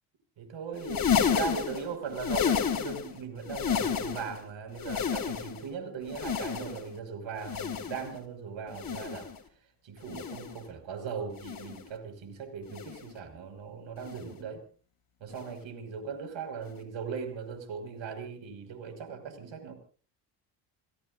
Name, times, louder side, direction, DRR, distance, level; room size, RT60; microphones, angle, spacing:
voice 1, 0.4-9.3 9.8-14.6 15.2-19.8, right 6 dB, 65° right, 6 dB, 5.8 m, -39 dB
sound 1, 0.7-3.1 3.4-4.4 4.7-5.7 6.1-6.9 7.4-8.1 8.7-9.4 10.0-10.6 11.3-11.9 12.7-13.1 14.0-14.3 15.3-15.5 16.7-16.8, left 7 dB, 40° left, 3.5 m, -31 dB
30.0 x 16.5 x 2.6 m, 0.41 s
supercardioid pair, 70°, 50 cm